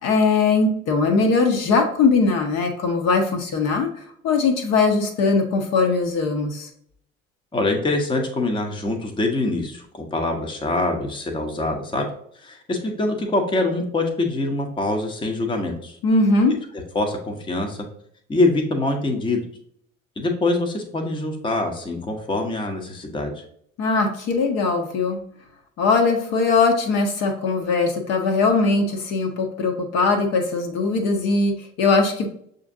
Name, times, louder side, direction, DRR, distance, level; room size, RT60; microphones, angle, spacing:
voice 1, 0.0-6.7 16.0-16.6 23.8-25.2 25.8-32.3, left 4 dB, 45° left, 3 dB, 0.8 m, -20 dB
voice 2, 7.5-12.0 12.4-16.0 16.9-17.8 18.3-19.4 20.2-23.4, left 2 dB, 15° left, 3 dB, 0.8 m, -24 dB
6.5 x 2.6 x 2.6 m, 0.66 s
figure-of-eight pair, 60°, 38 cm